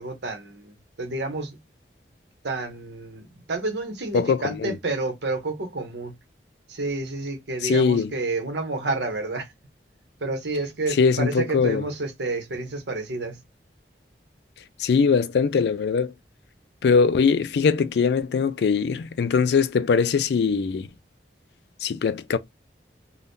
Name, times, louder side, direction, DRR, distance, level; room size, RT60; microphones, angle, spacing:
voice 1, 0.0-1.6 2.4-6.1 6.7-9.5 10.2-13.4, right 2 dB, 80° right, 0.8 m, -30 dB
voice 2, 4.1-4.8 7.6-8.1 11.0-11.8 14.8-16.1 16.8-20.9 21.8-22.4, left 5 dB, 70° left, 0.3 m, -21 dB
2.6 x 2.1 x 3.5 m
head